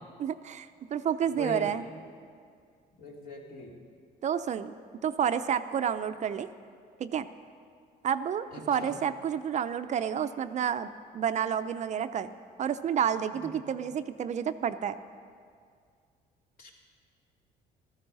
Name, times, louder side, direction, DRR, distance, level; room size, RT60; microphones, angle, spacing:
voice 1, 0.2-1.9 4.2-4.7 5.0-6.5 7.0-7.3 8.0-12.3 12.6-15.0, right 8 dB, 45° right, 11 dB, 0.5 m, -30 dB
voice 2, 1.3-1.8 3.0-3.7 8.5-9.0 13.4-13.6 16.6-16.7, left 1 dB, 60° left, -1 dB, 2.9 m, -40 dB
14.5 x 13.5 x 5.4 m, 2.2 s
cardioid pair, 110°, 17 cm